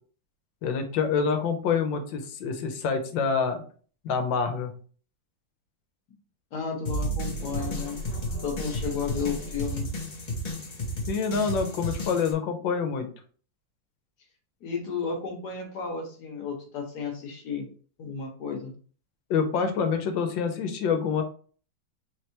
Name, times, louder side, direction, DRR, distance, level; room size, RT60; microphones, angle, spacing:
voice 1, 0.6-3.6 4.0-4.7 11.1-13.1 19.3-21.2, left 5 dB, 80° left, 6 dB, 1.5 m, -26 dB
voice 2, 6.5-8.0 8.4-9.9 14.6-17.7 18.0-18.7, left 5 dB, 65° left, 2 dB, 1.4 m, -33 dB
sound 1, 6.9-12.3, equal, 40° left, 0.6 m, -32 dB
4.3 x 3.3 x 2.9 m, 0.42 s
omnidirectional pair, 2.0 m